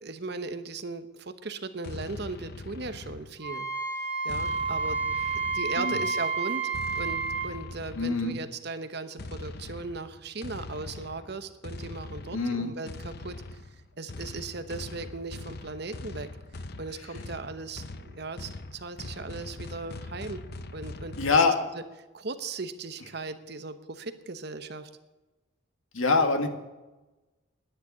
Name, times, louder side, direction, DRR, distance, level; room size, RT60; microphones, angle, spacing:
voice 1, 0.0-3.7 4.2-5.0 5.5-13.6 14.0-16.3 16.8-20.4 20.7-21.8 22.1-24.9, right 3 dB, 55° right, 10 dB, 1.0 m, -38 dB
sound 1, 1.8-3.6 4.3-6.0 6.7-8.4 9.2-21.4, left 2 dB, 50° left, 0.7 m, -42 dB
Wind instrument woodwind instrument, 3.4-7.5, right 4 dB, 5° right, 2.3 m, -30 dB
voice 2, 7.9-8.4 12.3-12.7 21.2-21.6 25.9-26.5, left 4 dB, 85° left, 6 dB, 1.9 m, -24 dB
10.5 x 10.5 x 9.7 m, 1.1 s
head